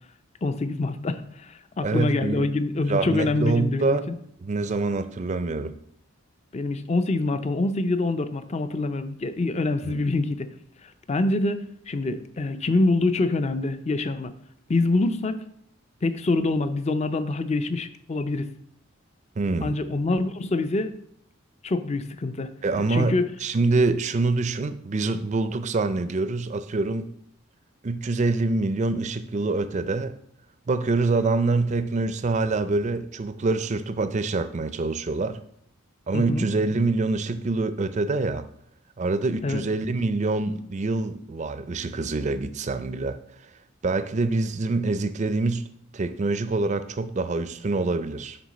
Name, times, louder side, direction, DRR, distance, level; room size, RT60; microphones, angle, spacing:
voice 1, 0.4-4.1 6.5-10.5 10.8-14.3 14.7-15.4 16.0-18.5 19.6-20.9 21.6-22.5 22.9-23.3 36.1-36.5 39.4-39.6, left 2 dB, 30° left, 0.5 m, -25 dB
voice 2, 1.8-2.5 2.9-4.0 4.4-5.8 9.8-10.0 19.4-19.7 22.6-27.1 27.8-30.2 30.7-35.4 36.1-38.5 39.0-43.2 43.8-45.7 45.9-48.4, right 3 dB, 35° right, 0.4 m, -25 dB
11.0 x 3.8 x 4.1 m
head